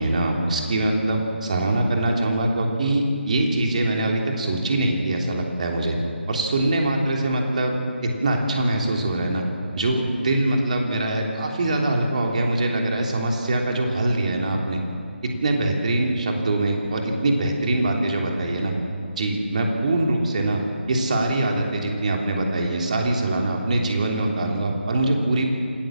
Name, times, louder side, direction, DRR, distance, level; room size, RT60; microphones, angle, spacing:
voice 1, 0.0-6.0 6.3-7.8 8.0-9.4 9.7-14.8 15.2-18.7 19.2-20.6 20.9-25.5, right 2 dB, 40° right, 1 dB, 3.1 m, -23 dB
26.5 x 13.5 x 7.6 m, 2.2 s
figure-of-eight pair, 155°, 6 cm